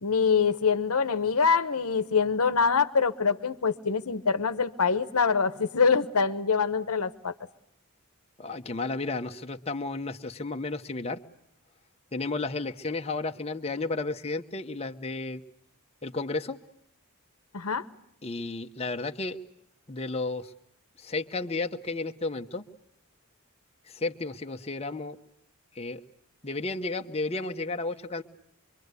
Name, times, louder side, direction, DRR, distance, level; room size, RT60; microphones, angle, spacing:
voice 1, 0.0-7.3 17.5-17.8, left 5 dB, 85° left, 11 dB, 1.0 m, -25 dB
voice 2, 8.4-11.2 12.1-15.4 16.0-16.6 18.2-19.4 19.9-20.5 21.0-22.6 23.9-25.2 25.7-26.0 26.4-28.2, left 3 dB, 30° left, 5 dB, 0.9 m, -32 dB
25.0 x 24.0 x 8.2 m, 0.74 s
head